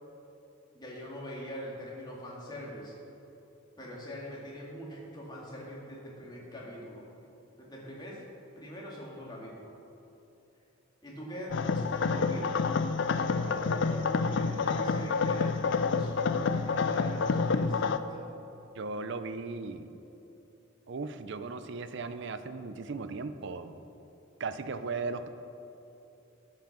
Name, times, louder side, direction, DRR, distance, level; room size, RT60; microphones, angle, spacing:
voice 1, 0.7-2.9 3.8-7.0 7.6-8.2 8.6-9.7 11.0-12.7 13.0-18.0, equal, 20° left, -4 dB, 2.0 m, -43 dB
sound 1, 11.5-18.0, left 4 dB, 65° left, 0.4 m, -28 dB
voice 2, 18.7-20.0 20.9-23.8 24.4-25.3, right 4 dB, 65° right, 10 dB, 0.6 m, -37 dB
13.5 x 5.8 x 5.9 m, 2.9 s
head